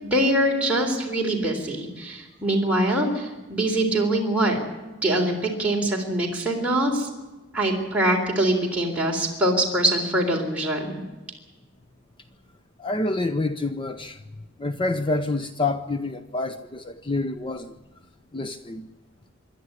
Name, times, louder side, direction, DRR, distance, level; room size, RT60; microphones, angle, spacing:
voice 1, 0.0-4.6 5.0-7.1 7.5-11.0, right 1 dB, 5° right, -2 dB, 3.7 m, -23 dB
voice 2, 12.8-14.2 14.6-17.8 18.3-18.9, left 2 dB, 25° left, 10 dB, 0.7 m, -27 dB
26.5 x 11.5 x 9.8 m, 1.2 s
head